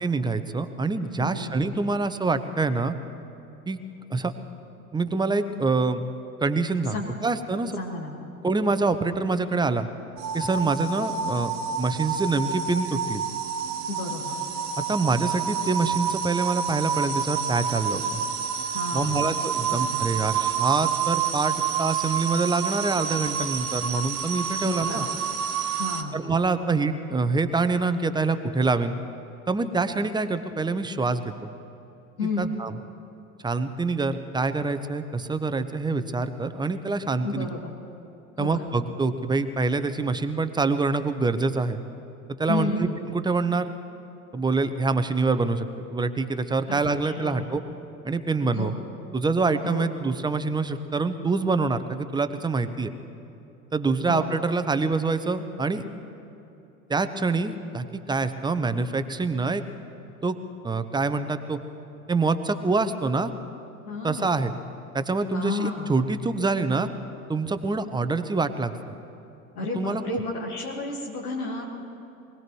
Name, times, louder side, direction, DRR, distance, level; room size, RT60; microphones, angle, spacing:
voice 1, 0.0-2.9 3.7-3.8 4.1-4.3 4.9-6.0 6.4-7.8 8.4-9.9 10.3-13.2 14.9-18.2 18.9-25.1 26.1-28.9 29.5-31.5 32.4-32.8 33.4-37.5 38.4-41.8 42.4-43.7 44.3-45.7 45.9-47.6 48.0-48.7 49.1-52.9 53.7-55.8 56.9-59.6 60.2-60.4 60.6-61.6 62.1-63.3 64.0-64.5 64.9-66.9 67.3-68.8 69.7-70.0, right 3 dB, 10° right, 10 dB, 0.8 m, -25 dB
voice 2, 1.2-1.6 6.9-7.1 7.8-8.3 13.9-14.4 18.7-19.3 19.7-20.0 24.6-25.1 25.8-26.2 32.2-32.5 37.2-37.7 38.4-38.7 42.5-43.0 46.7-47.4 48.5-48.8 49.6-50.0 54.1-54.3 63.8-64.3 65.3-65.9 69.6-71.8, left 2 dB, 75° left, -3 dB, 1.9 m, -32 dB
sound 1, 10.2-26.0, right 7 dB, 40° right, 1.6 m, -28 dB
23.5 x 18.5 x 3.1 m, 2.9 s
figure-of-eight pair, 75°, 44 cm